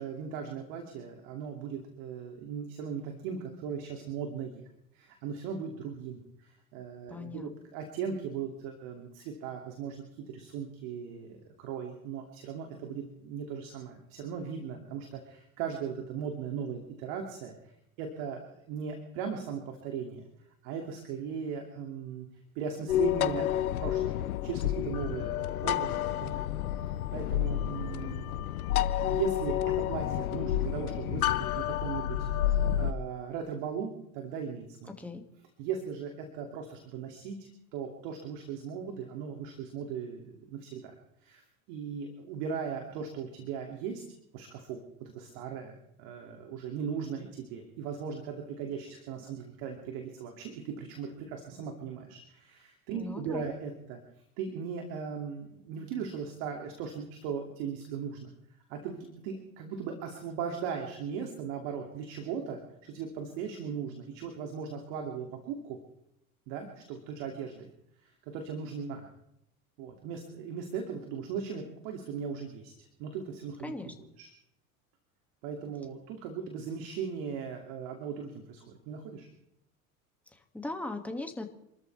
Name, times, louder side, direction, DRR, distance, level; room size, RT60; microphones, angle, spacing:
voice 1, 0.0-4.6 4.9-17.7 18.0-18.4 18.7-20.2 20.6-22.3 22.5-23.5 23.8-26.4 26.8-28.4 29.0-31.2 31.5-32.3 32.8-34.9 35.6-40.9 41.2-41.4 41.7-44.0 44.3-54.0 54.4-58.3 58.7-65.8 66.5-67.7 68.0-69.1 69.8-74.3 75.4-79.3, right 6 dB, 60° right, 3 dB, 2.9 m, -38 dB
voice 2, 7.1-7.5 35.0-35.2 52.9-53.5 73.6-73.9 80.3-81.5, left 2 dB, 5° left, 3 dB, 2.4 m, -39 dB
sound 1, 22.9-32.9, left 11 dB, 80° left, 0.9 m, -30 dB
28.0 x 13.5 x 3.6 m, 0.76 s
hypercardioid pair, 80°, 43 cm